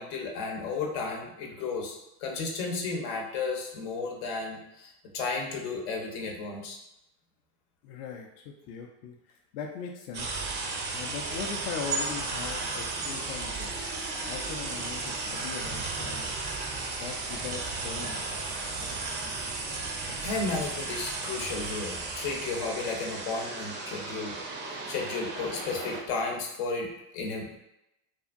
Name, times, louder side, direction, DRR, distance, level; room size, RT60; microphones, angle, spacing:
voice 1, 0.0-6.8 20.1-24.4 24.9-27.6, left 4 dB, 75° left, 1 dB, 0.8 m, -33 dB
voice 2, 7.8-10.5 10.9-13.8 14.3-16.4 17.0-18.3, left 6 dB, 60° left, 0 dB, 0.5 m, -40 dB
sound 1, 10.1-26.0, right 3 dB, 25° right, 0.3 m, -34 dB
2.7 x 2.5 x 2.4 m, 0.88 s
supercardioid pair, 110°, 46 cm